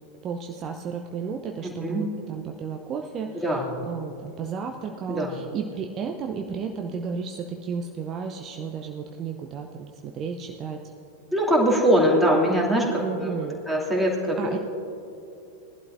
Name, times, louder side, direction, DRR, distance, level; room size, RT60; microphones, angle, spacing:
voice 1, 0.2-3.6 3.9-10.8 13.0-13.6 14.4-14.6, right 6 dB, 30° right, 3 dB, 0.7 m, -33 dB
voice 2, 1.6-2.1 3.4-3.7 5.1-5.3 11.3-13.3 13.7-14.6, equal, ahead, -4 dB, 2.6 m, -22 dB
20.0 x 11.5 x 2.6 m, 2.8 s
figure-of-eight pair, 90°, 0 cm